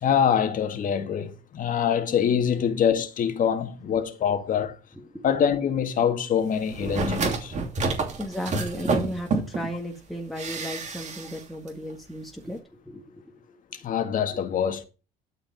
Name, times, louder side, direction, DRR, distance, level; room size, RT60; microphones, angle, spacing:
voice 1, 0.0-4.8 5.2-7.6 13.7-14.8, left 8 dB, 50° left, 1.9 m, -24 dB
sound 1, 6.7-9.7 10.4-11.4 11.7-11.8, right 4 dB, 45° right, 2.9 m, -28 dB
voice 2, 8.2-12.6 12.9-13.6 14.3-14.4, equal, ahead, 1.9 m, -35 dB
12.0 x 5.1 x 5.7 m
cardioid pair, 110°, 17 cm